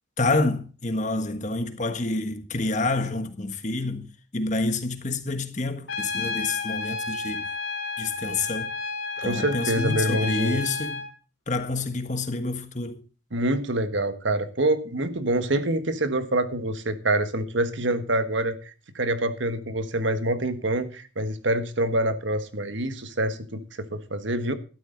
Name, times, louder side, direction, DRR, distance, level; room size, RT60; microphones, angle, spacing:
voice 1, 0.2-7.5 8.0-8.7 9.2-11.0 11.5-13.0, left 2 dB, 35° left, 1.4 m, -28 dB
Trumpet, 5.9-11.1, left 4 dB, 80° left, 3.5 m, -31 dB
voice 2, 9.2-10.6 13.3-18.6 18.9-24.6, right 1 dB, 70° right, 1.5 m, -26 dB
13.0 x 12.0 x 3.9 m
head